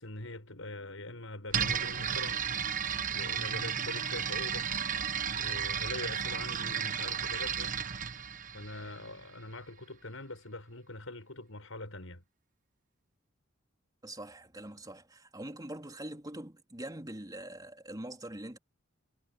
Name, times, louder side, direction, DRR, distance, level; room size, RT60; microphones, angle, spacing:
voice 1, 0.0-2.4 3.1-4.7 5.4-7.8 8.5-12.2, left 2 dB, 90° left, 5.8 m, -43 dB
sound 1, 1.5-9.3, right 7 dB, 40° right, 1.0 m, -33 dB
voice 2, 14.0-18.6, right 1 dB, 20° right, 3.7 m, -43 dB
head